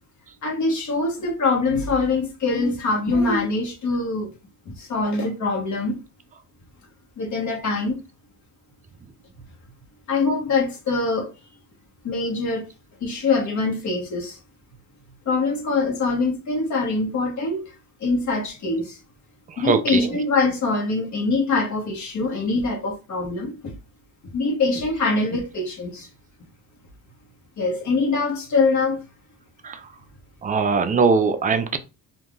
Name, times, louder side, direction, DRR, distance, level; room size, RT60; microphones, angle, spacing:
voice 1, 0.4-4.3 4.7-6.0 7.2-8.0 10.1-11.3 12.0-12.6 13.0-14.4 15.3-17.7 18.0-19.0 19.6-23.7 24.3-26.1 27.6-29.0, left 3 dB, 50° left, 1.2 m, -23 dB
voice 2, 19.6-20.1 29.6-29.8 30.4-31.8, right 5 dB, 25° right, 0.4 m, -21 dB
3.5 x 2.6 x 2.4 m
cardioid pair, 105°, 37 cm